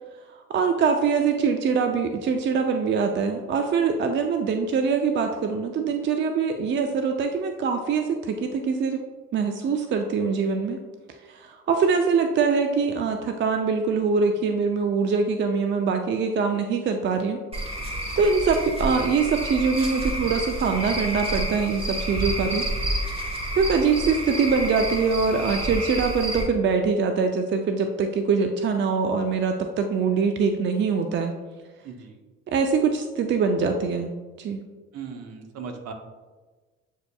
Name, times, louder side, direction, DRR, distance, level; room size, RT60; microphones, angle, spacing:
voice 1, 0.5-9.0 9.3-10.8 11.3-17.4 18.2-22.6 23.1-31.3 32.5-34.1 34.4-34.6, right 5 dB, 40° right, 5 dB, 0.4 m, -23 dB
Cricket / Frog, 17.5-26.4, right 1 dB, 20° right, 1.0 m, -29 dB
voice 2, 31.8-32.2 34.9-35.9, right 5 dB, 60° right, 5 dB, 0.8 m, -38 dB
7.9 x 2.7 x 2.2 m, 1.3 s
supercardioid pair, 75°, 29 cm